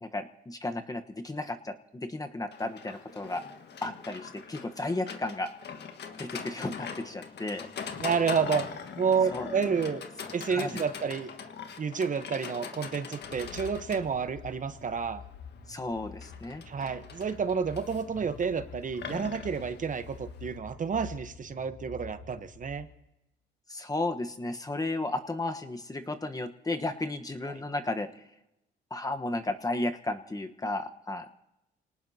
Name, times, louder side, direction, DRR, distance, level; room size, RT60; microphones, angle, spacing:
voice 1, 0.0-3.4 3.8-5.5 6.2-7.7 8.5-8.6 9.3-9.5 10.5-10.7 15.7-16.6 23.7-28.1 28.9-31.3, left 2 dB, 20° left, 7 dB, 1.1 m, -34 dB
Livestock farm animals working animals, 2.5-20.5, left 6 dB, 60° left, 1.6 m, -42 dB
voice 2, 8.0-8.7 9.0-10.0 10.3-11.3 11.8-15.2 16.7-22.9 27.5-27.6, right 6 dB, 40° right, 11 dB, 1.0 m, -30 dB
sound 1, 13.2-22.9, left 6 dB, 75° left, 1.8 m, -47 dB
27.0 x 18.5 x 2.8 m, 0.91 s
cardioid pair, 90°, 20 cm